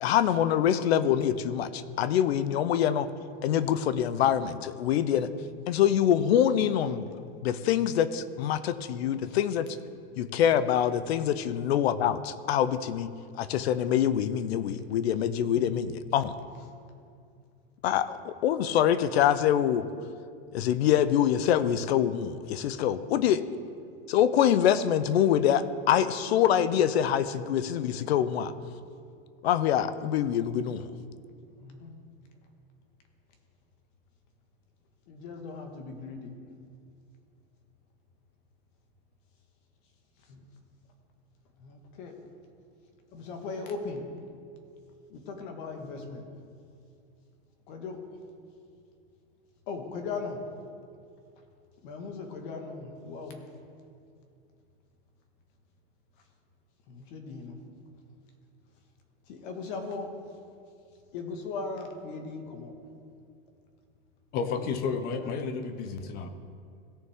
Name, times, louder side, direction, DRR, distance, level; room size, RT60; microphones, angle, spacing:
voice 1, 0.0-3.1 3.4-5.3 5.7-7.1 7.4-9.7 10.2-13.1 13.4-16.3 17.8-19.9 20.5-23.4 24.1-28.5 29.4-30.8, left 10 dB, 70° left, 14 dB, 0.7 m, -25 dB
voice 2, 5.1-5.5 9.3-9.4 31.6-31.9 35.1-36.3 40.3-40.4 41.6-42.2 43.1-44.0 45.1-46.2 47.7-48.0 49.7-50.4 51.8-53.4 56.9-57.6 59.3-60.1 61.1-62.7 64.3-65.3, left 4 dB, 50° left, 4 dB, 1.7 m, -39 dB
voice 3, 64.3-66.3, left 5 dB, 30° left, 9 dB, 0.7 m, -31 dB
17.5 x 6.5 x 3.6 m, 2.4 s
supercardioid pair, 150°, 32 cm